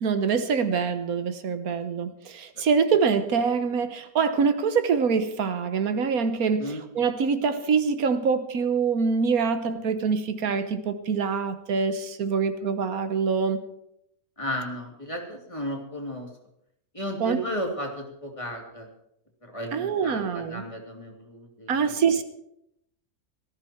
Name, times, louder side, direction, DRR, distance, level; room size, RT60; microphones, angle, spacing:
voice 1, 0.0-13.6 17.2-17.4 19.7-20.6 21.7-22.2, right 5 dB, 85° right, 10 dB, 1.5 m, -25 dB
voice 2, 14.4-16.3 16.9-18.9 19.5-21.9, equal, 20° left, 0 dB, 3.1 m, -34 dB
18.5 x 14.0 x 4.5 m, 0.77 s
omnidirectional pair, 1.5 m